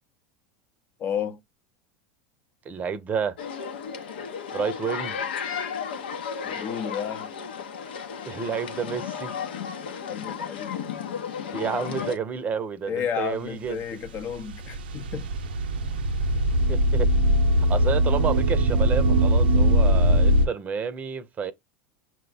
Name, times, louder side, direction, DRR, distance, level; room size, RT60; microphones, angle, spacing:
voice 1, 1.0-1.4 6.4-7.3 10.1-10.8 12.9-15.3 16.3-16.4, left 8 dB, 40° left, 0.7 m, -32 dB
voice 2, 2.7-3.4 4.5-5.3 8.3-9.3 11.5-13.8 16.7-17.1 17.7-21.5, right 6 dB, 30° right, 0.6 m, -30 dB
sound 1, 3.4-12.2, left 7 dB, 85° left, 0.8 m, -34 dB
sound 2, 13.7-20.5, equal, 85° right, 0.6 m, -21 dB
6.2 x 2.2 x 3.9 m
hypercardioid pair, 95°, 5 cm